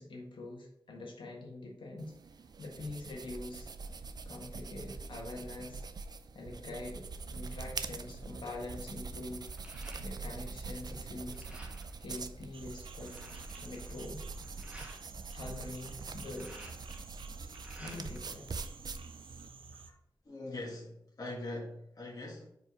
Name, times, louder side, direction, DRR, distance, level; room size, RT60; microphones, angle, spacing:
voice 1, 0.0-2.1 2.6-3.7 4.2-5.8 6.3-7.0 7.3-9.5 10.0-11.5 12.0-13.2 13.6-14.3 15.3-16.7 17.8-18.5, left 2 dB, 70° left, -1 dB, 1.6 m, -44 dB
sound 1, 2.0-19.5, right 4 dB, 50° right, 0.4 m, -44 dB
sound 2, 9.3-10.5 10.8-12.0 12.5-12.6 12.8-15.0 16.0-18.3 18.6-19.5, right 1 dB, 15° right, 1.3 m, -53 dB
sound 3, 12.5-19.9, right 4 dB, 85° right, 0.7 m, -52 dB
voice 2, 20.2-22.5, left 2 dB, 45° left, -5 dB, 1.6 m, -42 dB
5.1 x 4.7 x 4.8 m, 0.76 s
wide cardioid pair, 130°, 9 cm